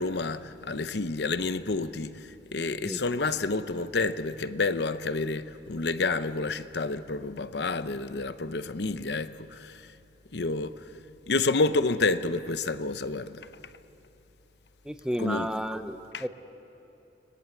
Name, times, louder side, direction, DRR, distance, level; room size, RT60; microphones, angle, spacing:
voice 1, 0.0-9.8 10.3-10.8 11.3-13.5 15.2-15.5 16.1-16.2, left 3 dB, 70° left, 0.8 m, -29 dB
voice 2, 14.8-16.3, equal, 5° right, 0.6 m, -32 dB
30.0 x 21.5 x 8.2 m
head